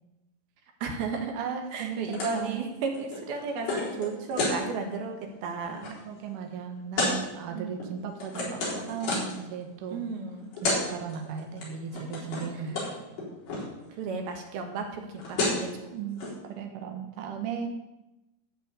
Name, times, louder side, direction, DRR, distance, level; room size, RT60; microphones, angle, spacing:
voice 1, 0.8-1.4 1.7-6.0 7.5-7.7 9.9-10.5 12.5-12.8 14.0-15.9, right 4 dB, 85° right, 3 dB, 3.5 m, -34 dB
voice 2, 1.3-2.0 2.3-2.6 6.1-10.0 10.6-12.9 15.9-17.7, right 7 dB, 65° right, 3 dB, 2.7 m, -36 dB
sound 1, 2.1-2.4 2.7-4.6 5.1-5.3 5.6-5.9 7.0-7.2 7.8-9.4 10.3-10.4 10.5-10.8 11.1-11.6 11.9-12.5 12.8-12.9 13.2-13.7 14.9-15.0 15.2-15.7 16.2-16.3, left 2 dB, 65° left, 5.5 m, -30 dB
14.0 x 6.5 x 8.1 m, 0.97 s
omnidirectional pair, 4.2 m